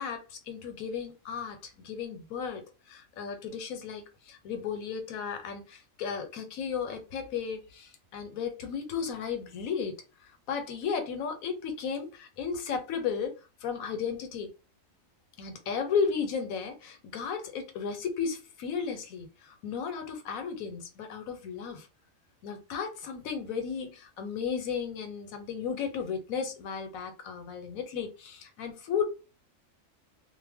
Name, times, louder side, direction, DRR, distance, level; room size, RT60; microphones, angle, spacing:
voice 1, 0.0-2.6 2.9-10.0 10.5-13.3 13.6-14.5 15.4-21.9 22.4-29.1, left 6 dB, 90° left, 1.1 m, -34 dB
2.3 x 2.2 x 3.4 m
omnidirectional pair, 1.4 m